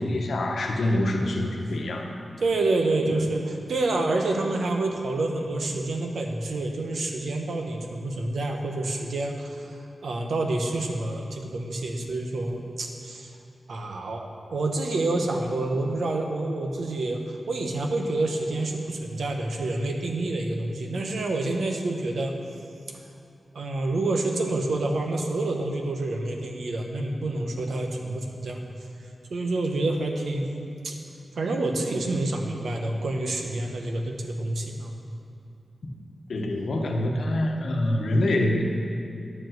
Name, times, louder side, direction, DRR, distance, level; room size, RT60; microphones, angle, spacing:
voice 1, 0.0-2.2 3.1-3.3 36.3-38.7, left 1 dB, 75° left, 2 dB, 1.0 m, -25 dB
voice 2, 2.4-9.7 10.0-13.3 13.7-22.3 23.5-28.6 29.3-30.9 31.3-35.0, right 2 dB, 85° right, 2 dB, 1.0 m, -28 dB
10.0 x 4.8 x 7.7 m, 2.6 s
wide cardioid pair, 145°, 0 cm